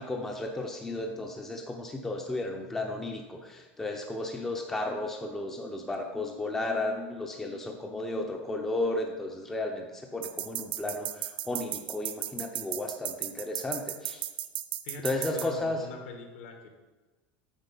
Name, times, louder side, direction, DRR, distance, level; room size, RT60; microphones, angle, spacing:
voice 1, 0.0-14.2 15.0-15.8, left 2 dB, 5° left, 2 dB, 0.5 m, -34 dB
sound 1, 10.2-15.5, right 14 dB, 80° right, 0.5 m, -35 dB
voice 2, 14.8-16.7, left 4 dB, 65° left, 4 dB, 1.4 m, -42 dB
8.1 x 4.2 x 5.3 m, 1.2 s
supercardioid pair, 170°, 6 cm